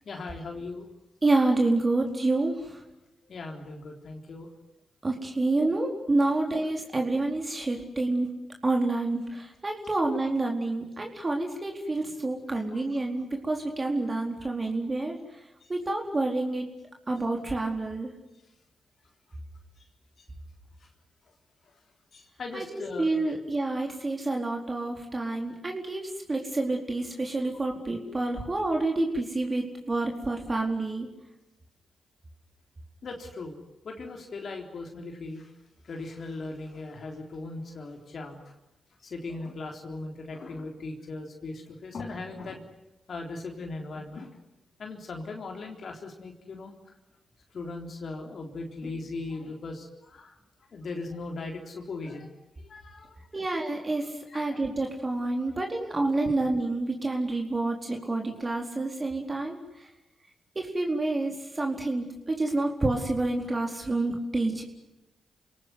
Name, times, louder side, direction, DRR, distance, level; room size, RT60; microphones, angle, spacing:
voice 1, 0.1-0.9 3.3-4.5 11.2-11.3 12.9-13.0 15.6-15.7 22.1-23.1 33.0-33.6 33.8-35.5 35.8-38.5 39.0-42.6 43.1-44.3 44.8-46.7 47.5-50.4 50.7-52.3 52.6-53.4 54.3-54.7, left 3 dB, 60° left, 2 dB, 3.7 m, -38 dB
voice 2, 1.2-2.8 5.0-8.3 8.6-15.2 15.7-16.7 17.1-18.1 22.5-31.1 53.3-59.6 60.6-64.6, right 2 dB, 35° right, 2 dB, 4.3 m, -28 dB
28.5 x 18.5 x 9.6 m, 0.96 s
hypercardioid pair, 40°, 0 cm